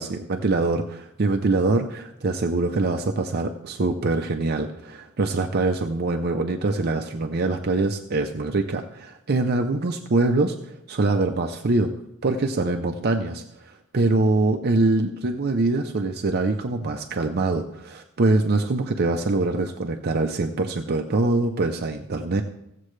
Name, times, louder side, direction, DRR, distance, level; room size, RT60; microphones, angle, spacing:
voice 1, 0.0-11.9 12.2-22.4, right 2 dB, 50° right, 4 dB, 0.6 m, -24 dB
16.5 x 7.5 x 3.2 m, 0.83 s
head